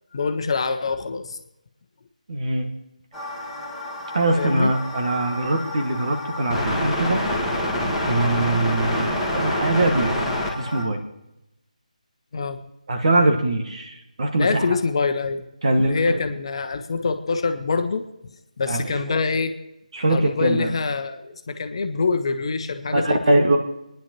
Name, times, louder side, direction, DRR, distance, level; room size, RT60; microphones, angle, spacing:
voice 1, 0.1-1.4 4.4-4.7 12.3-12.6 14.4-18.0 18.6-19.5 20.1-23.4, left 4 dB, 40° left, 7 dB, 1.1 m, -25 dB
voice 2, 2.3-2.7 4.1-7.2 8.0-10.1 10.6-11.0 12.9-14.6 15.6-16.0 18.7-19.2 19.9-20.7 22.9-23.6, right 2 dB, 50° right, 3 dB, 2.0 m, -22 dB
sound 1, 3.1-10.8, left 1 dB, 5° right, 1.9 m, -27 dB
27.5 x 10.5 x 3.1 m, 0.89 s
figure-of-eight pair, 155°, 4 cm